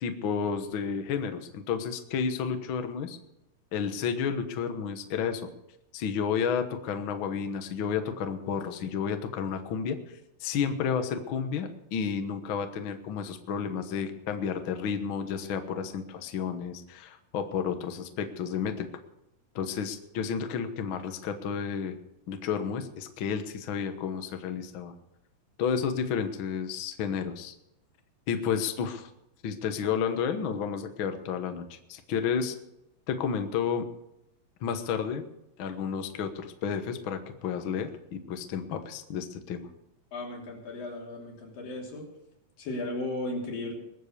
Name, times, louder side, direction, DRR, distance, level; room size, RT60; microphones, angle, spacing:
voice 1, 0.0-3.2 3.7-5.4 5.9-10.0 10.4-18.9 19.5-22.0 22.3-24.9 25.6-27.5 28.3-29.1 29.4-32.5 33.1-33.8 34.6-35.2 35.6-39.7, left 7 dB, 60° left, 7 dB, 1.3 m, -31 dB
voice 2, 40.1-42.1 42.6-43.7, left 2 dB, 85° left, -1 dB, 4.8 m, -35 dB
21.5 x 7.4 x 6.7 m, 0.84 s
omnidirectional pair, 3.9 m